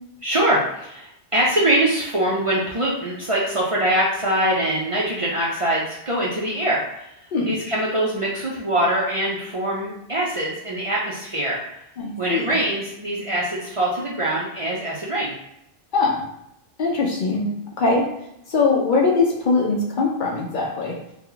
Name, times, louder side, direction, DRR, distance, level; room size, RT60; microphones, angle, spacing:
voice 1, 0.2-7.1 7.5-11.6 12.2-15.3, right 1 dB, 40° right, -6 dB, 0.5 m, -23 dB
voice 2, 12.0-12.5 15.9-16.2 16.8-17.5 17.8-18.1 18.5-21.0, left 3 dB, 55° left, -1 dB, 0.7 m, -21 dB
2.9 x 2.2 x 3.7 m, 0.80 s
omnidirectional pair, 1.1 m